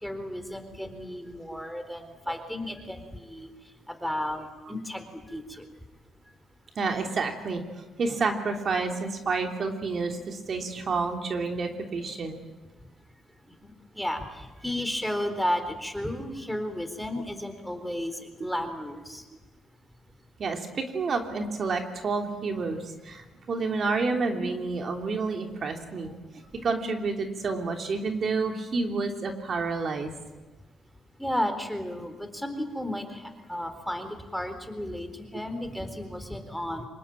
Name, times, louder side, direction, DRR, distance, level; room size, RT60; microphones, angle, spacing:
voice 1, 0.0-3.5 3.9-5.7 13.6-19.2 31.2-36.9, left 1 dB, ahead, 7 dB, 4.0 m, -33 dB
voice 2, 6.8-7.6 8.0-12.4 20.4-30.1, right 4 dB, 50° right, 3 dB, 3.1 m, -29 dB
25.5 x 21.0 x 9.0 m, 1.2 s
cardioid pair, 90°, 0 cm